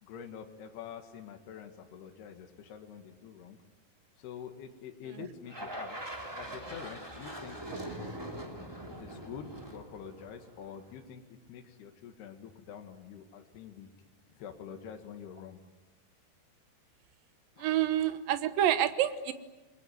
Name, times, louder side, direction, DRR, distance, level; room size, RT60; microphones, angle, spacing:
voice 1, 0.0-3.6 4.2-8.2 9.0-13.9 14.3-15.6 17.6-17.7, left 8 dB, 75° left, 4 dB, 3.8 m, -46 dB
sound 1, 5.5-10.8, right 1 dB, 10° right, 2.1 m, -42 dB
voice 2, 17.6-19.3, right 11 dB, 65° right, 10 dB, 2.6 m, -28 dB
29.0 x 21.5 x 9.5 m, 1.2 s
omnidirectional pair, 4.8 m